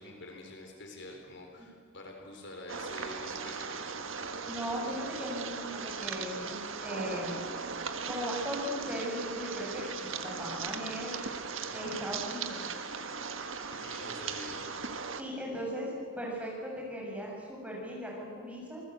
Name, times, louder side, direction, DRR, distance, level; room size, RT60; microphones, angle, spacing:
voice 1, 0.0-4.0 13.7-14.7, left 1 dB, 60° left, 2 dB, 3.9 m, -46 dB
sound 1, 2.7-15.2, right 5 dB, 70° right, 1.5 m, -38 dB
voice 2, 4.5-7.4 8.1-11.2 11.7-12.6 15.2-18.8, equal, 5° right, -3 dB, 7.0 m, -38 dB
27.0 x 19.5 x 8.2 m, 2.2 s
head